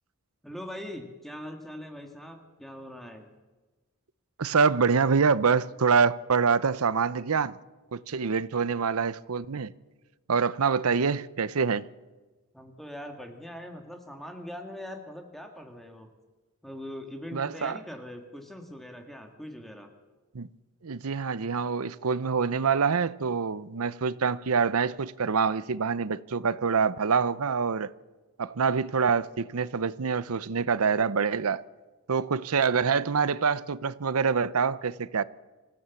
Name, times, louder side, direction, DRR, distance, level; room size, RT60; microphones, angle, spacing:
voice 1, 0.4-3.3 12.5-16.1 16.6-19.9, left 1 dB, ahead, 1.7 m, -41 dB
voice 2, 4.4-7.6 7.9-9.7 10.3-11.9 17.3-17.8 20.3-20.5 20.8-27.9 28.4-31.6 32.1-35.2, right 5 dB, 75° right, 0.7 m, -26 dB
26.5 x 15.5 x 7.1 m
head